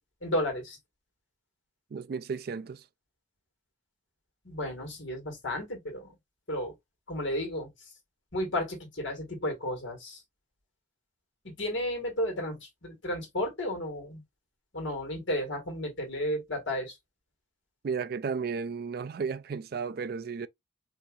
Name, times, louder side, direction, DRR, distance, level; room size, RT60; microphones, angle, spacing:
voice 1, 0.2-0.8 4.4-6.1 6.5-6.7 7.1-7.9 8.3-10.2 11.4-14.2 14.7-17.0, left 1 dB, 65° left, 1.8 m, -33 dB
voice 2, 1.9-2.8 17.8-20.5, right 5 dB, 50° right, 0.3 m, -33 dB
4.1 x 2.8 x 2.4 m
head